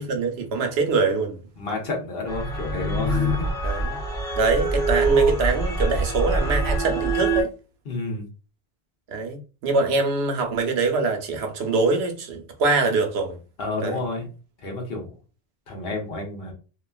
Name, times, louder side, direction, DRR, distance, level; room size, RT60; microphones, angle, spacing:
voice 1, 0.0-1.4 3.6-4.0 4.4-7.5 9.1-13.4 13.8-14.0, right 3 dB, 80° right, 0.9 m, -24 dB
voice 2, 1.6-3.5 7.9-8.2 13.6-14.3 14.6-15.1 15.7-16.5, left 2 dB, 65° left, 1.1 m, -30 dB
sound 1, 2.3-7.4, right 2 dB, 5° left, 1.3 m, -24 dB
2.9 x 2.4 x 2.3 m
omnidirectional pair, 1.1 m